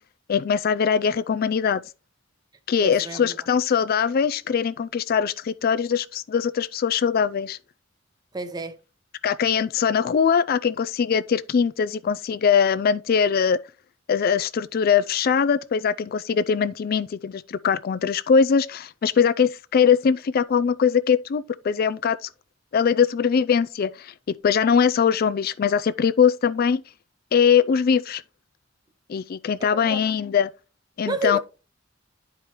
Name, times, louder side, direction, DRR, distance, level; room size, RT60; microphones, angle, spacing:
voice 1, 0.3-1.8 2.7-7.6 9.2-13.6 14.1-22.3 22.7-24.1 24.4-26.8 27.3-28.2 29.1-30.5 31.0-31.4, left 6 dB, 50° left, 0.4 m, -21 dB
voice 2, 2.8-3.4 8.3-8.8 29.7-30.0 31.0-31.4, right 1 dB, 20° right, 0.8 m, -30 dB
10.5 x 4.8 x 2.9 m
head